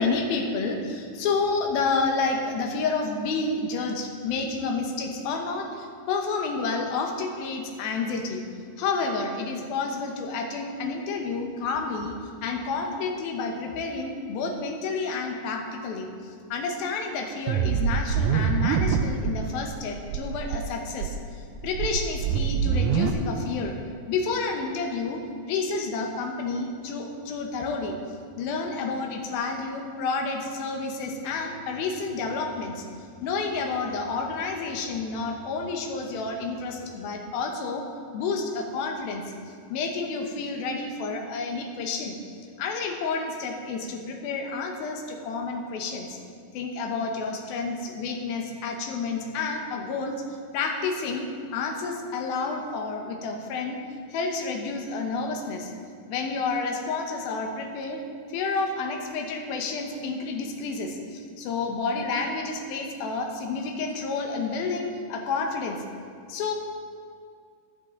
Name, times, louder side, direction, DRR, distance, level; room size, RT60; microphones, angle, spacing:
voice 1, 0.0-8.4 8.8-21.2 21.6-23.8 24.1-25.2 25.5-27.9 28.4-32.8 33.2-37.9 38.1-39.2 39.7-42.2 42.6-46.2 46.5-50.2 50.5-53.8 54.1-55.7 56.1-58.0 58.3-65.8 66.3-66.5, left 4 dB, 90° left, 2 dB, 2.9 m, -30 dB
sound 1, 17.5-19.3 19.7-19.8 20.1-20.6 21.0-23.1, right 7 dB, 85° right, 1.7 m, -25 dB
15.0 x 10.0 x 3.8 m, 2.2 s
omnidirectional pair, 4.1 m